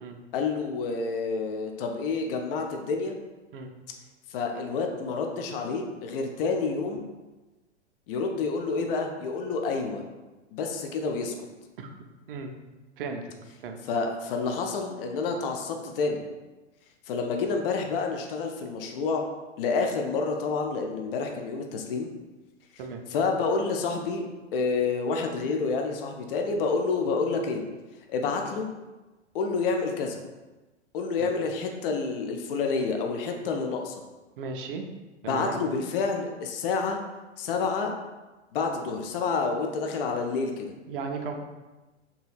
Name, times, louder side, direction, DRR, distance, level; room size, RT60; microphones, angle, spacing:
voice 1, 0.3-3.1 4.3-7.1 8.1-10.0 10.5-11.3 13.8-16.2 17.1-19.3 19.6-22.1 23.1-24.3 24.5-27.6 28.1-28.7 29.3-30.2 30.9-33.9 35.2-37.0 37.4-37.9 38.5-40.7, left 4 dB, 50° left, 3 dB, 0.4 m, -28 dB
voice 2, 34.4-34.8 35.2-35.6 40.9-41.4, right 5 dB, 50° right, 4 dB, 0.4 m, -35 dB
2.8 x 2.7 x 2.3 m, 1.2 s
figure-of-eight pair, 105°, 36 cm